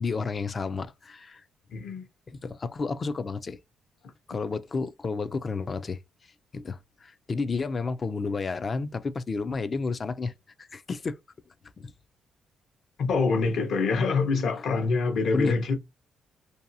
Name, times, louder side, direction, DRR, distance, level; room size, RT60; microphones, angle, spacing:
voice 1, 0.0-1.4 2.3-3.6 4.3-6.0 6.5-10.3 10.7-11.2 11.8-11.9 15.3-15.5, left 4 dB, 35° left, 0.4 m, -31 dB
voice 2, 1.7-2.1 13.0-15.8, left 4 dB, 65° left, 0.9 m, -25 dB
2.7 x 2.3 x 2.6 m
cardioid pair, 90°, 0 cm